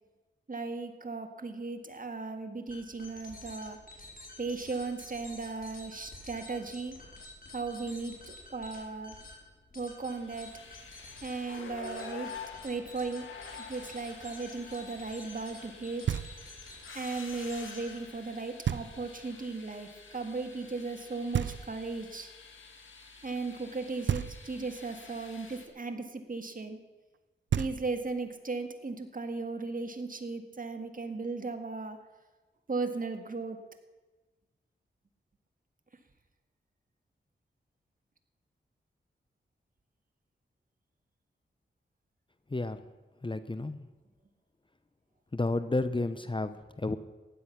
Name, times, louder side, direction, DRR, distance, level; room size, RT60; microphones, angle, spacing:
voice 1, 0.5-3.8 4.4-7.0 7.5-9.2 9.8-10.6 11.2-12.3 12.6-13.3 13.7-16.2 16.9-22.3 23.2-26.8 27.6-32.0 32.7-33.6, right 3 dB, 45° right, 6 dB, 1.8 m, -36 dB
sound 1, 2.7-18.1, left 2 dB, 45° left, 4.7 m, -50 dB
sound 2, 10.1-25.7, left 5 dB, 85° left, 1.7 m, -49 dB
Knock, 16.1-16.7 18.6-19.3 21.3-22.1 24.1-24.8 27.1-27.2 27.5-28.3, right 9 dB, 70° right, 0.5 m, -33 dB
voice 2, 42.5-42.8 43.2-43.9 45.3-47.0, left 2 dB, 25° left, 12 dB, 0.8 m, -31 dB
15.5 x 10.0 x 5.9 m, 1.2 s
cardioid pair, 45°, 20 cm